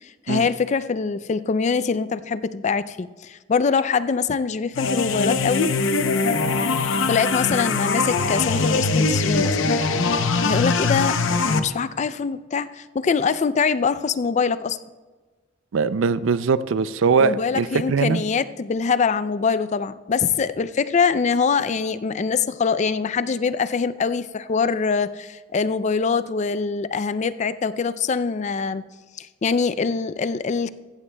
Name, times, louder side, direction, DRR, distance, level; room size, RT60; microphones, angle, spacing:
voice 1, 0.0-5.7 7.1-9.7 10.4-14.8 17.2-28.8 29.2-30.7, left 5 dB, 35° left, 14 dB, 0.4 m, -23 dB
sound 1, 4.7-11.6, left 4 dB, 90° left, 0.7 m, -22 dB
voice 2, 15.7-18.2, right 5 dB, 90° right, 15 dB, 0.4 m, -21 dB
14.5 x 14.5 x 2.2 m, 1.3 s
head